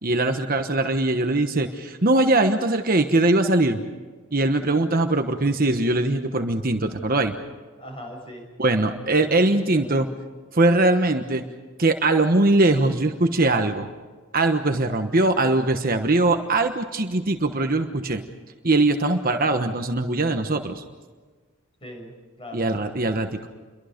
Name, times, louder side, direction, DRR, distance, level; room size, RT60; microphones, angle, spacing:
voice 1, 0.0-3.8 4.3-7.3 8.6-10.1 10.5-11.4 11.8-13.9 14.3-18.2 18.6-20.8 22.5-23.5, right 2 dB, 40° right, 6 dB, 1.2 m, -21 dB
voice 2, 7.8-8.5 9.2-9.9 21.8-22.7, equal, 25° left, 2 dB, 7.1 m, -40 dB
29.5 x 23.5 x 5.3 m, 1.4 s
head